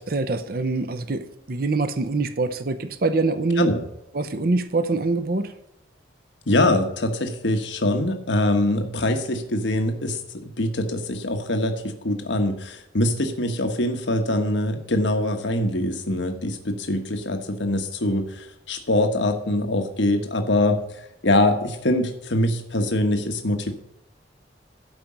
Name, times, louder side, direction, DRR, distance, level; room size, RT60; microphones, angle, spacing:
voice 1, 0.0-3.7 4.1-5.5, right 3 dB, 55° right, 10 dB, 0.7 m, -24 dB
voice 2, 6.5-23.7, left 1 dB, 85° left, 5 dB, 1.2 m, -23 dB
12.5 x 5.3 x 7.4 m, 0.85 s
head